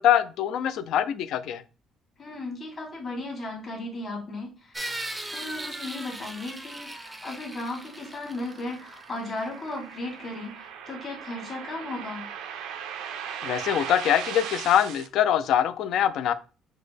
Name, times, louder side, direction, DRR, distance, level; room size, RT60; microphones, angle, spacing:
voice 1, 0.0-1.6 13.4-16.3, left 10 dB, 65° left, 13 dB, 0.3 m, -23 dB
voice 2, 2.2-4.8 5.3-12.3, left 2 dB, 30° left, -2 dB, 1.6 m, -36 dB
sound 1, 4.7-9.5, right 1 dB, 10° right, 0.5 m, -38 dB
sound 2, 7.2-15.1, right 8 dB, 90° right, 0.4 m, -39 dB
5.9 x 2.1 x 3.3 m, 0.36 s
cardioid pair, 145°, 0 cm